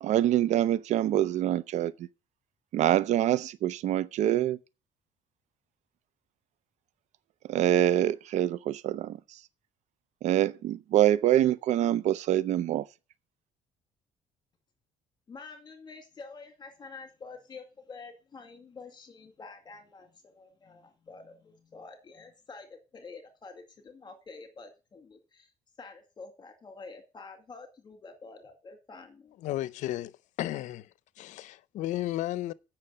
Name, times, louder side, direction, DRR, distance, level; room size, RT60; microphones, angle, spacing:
voice 1, 0.0-2.1 2.7-4.6 7.5-9.4 10.2-12.9, right 12 dB, 65° right, 0.6 m, -25 dB
voice 2, 15.3-25.5 25.8-29.4, left 4 dB, 35° left, 2.1 m, -48 dB
voice 3, 29.4-30.9 31.2-32.5, left 14 dB, 70° left, 0.6 m, -33 dB
8.5 x 6.0 x 7.7 m
cardioid pair, 95°, 13 cm